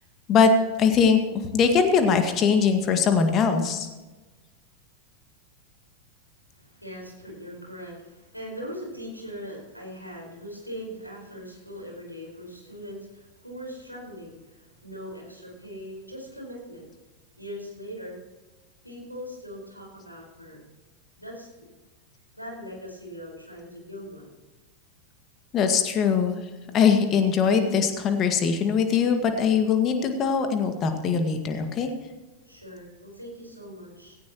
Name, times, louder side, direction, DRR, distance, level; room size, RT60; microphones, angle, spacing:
voice 1, 0.8-1.2 1.5-3.9 25.5-26.4 26.7-31.9, left 6 dB, 30° left, 6 dB, 1.9 m, -21 dB
voice 2, 6.5-16.9 17.4-18.2 18.8-20.6 21.2-21.5 22.3-24.3 32.5-34.2, equal, 90° left, -1 dB, 5.1 m, -40 dB
17.0 x 16.5 x 3.1 m, 1.2 s
figure-of-eight pair, 90°, 0 cm